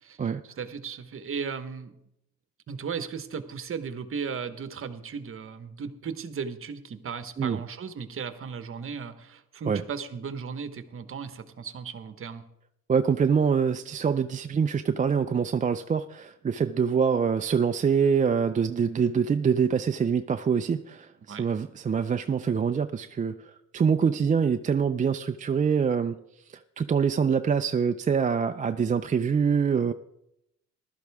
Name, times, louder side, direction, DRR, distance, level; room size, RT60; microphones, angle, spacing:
voice 1, 0.0-1.9 2.7-12.4 21.3-21.5, right 6 dB, 45° right, 1.1 m, -36 dB
voice 2, 12.9-26.2 26.8-29.9, right 6 dB, 25° right, 0.4 m, -25 dB
15.0 x 12.0 x 3.5 m
cardioid pair, 90°, 30 cm